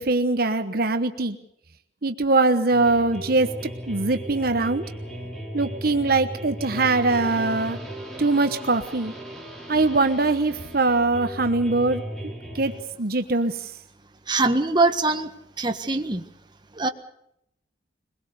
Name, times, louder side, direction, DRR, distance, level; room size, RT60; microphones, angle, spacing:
voice 1, 0.0-1.4 2.0-4.8 5.5-7.8 8.2-9.1 9.7-12.0 12.5-13.6, right 3 dB, 55° right, 8 dB, 1.1 m, -22 dB
sound 1, 2.7-12.8, right 1 dB, 5° left, 4.4 m, -36 dB
voice 2, 14.3-15.3 15.6-16.2 16.8-16.9, right 3 dB, 25° right, 6 dB, 1.6 m, -22 dB
22.5 x 22.0 x 6.8 m, 0.77 s
head